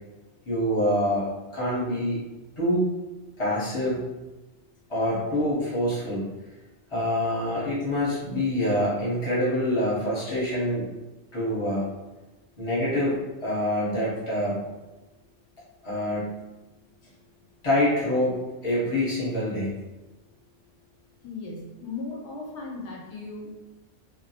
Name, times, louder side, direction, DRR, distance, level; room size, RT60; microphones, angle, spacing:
voice 1, 0.5-1.3 1.5-2.2 2.6-2.9 3.4-4.0 4.9-6.3 6.9-10.9 11.3-11.9 12.6-14.6 15.8-16.3 17.6-18.4 18.6-19.7, left 1 dB, 30° left, -8 dB, 0.9 m, -25 dB
voice 2, 21.2-23.5, left 3 dB, 80° left, -4 dB, 0.9 m, -37 dB
2.2 x 2.1 x 2.7 m, 1.1 s
omnidirectional pair, 1.2 m